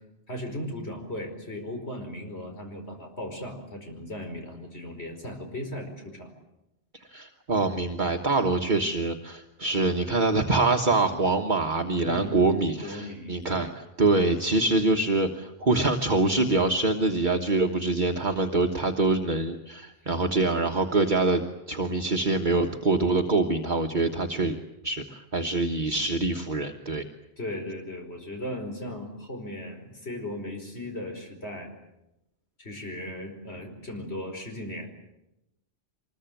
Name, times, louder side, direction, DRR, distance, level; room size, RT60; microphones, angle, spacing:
voice 1, 0.3-6.3 12.0-12.5 12.8-13.7 27.4-31.7 32.6-34.9, left 1 dB, 70° left, 3 dB, 5.4 m, -37 dB
voice 2, 7.1-21.4 21.7-24.6 24.8-27.0, right 3 dB, 45° right, 3 dB, 1.5 m, -25 dB
24.5 x 21.5 x 9.2 m, 0.90 s
omnidirectional pair, 1.1 m